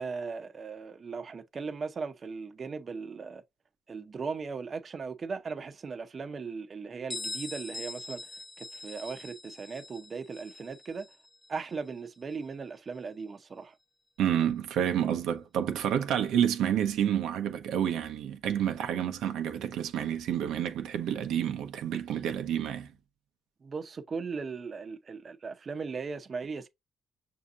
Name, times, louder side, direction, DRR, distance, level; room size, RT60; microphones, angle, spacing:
voice 1, 0.0-3.4 3.9-8.2 8.6-11.1 11.5-13.8 23.6-26.7, right 5 dB, 40° right, 0.7 m, -38 dB
Bell, 7.1-12.6, left 2 dB, 20° left, 1.3 m, -43 dB
voice 2, 14.2-22.9, right 10 dB, 85° right, 0.8 m, -29 dB
6.2 x 2.8 x 2.5 m
cardioid pair, 90°, 0 cm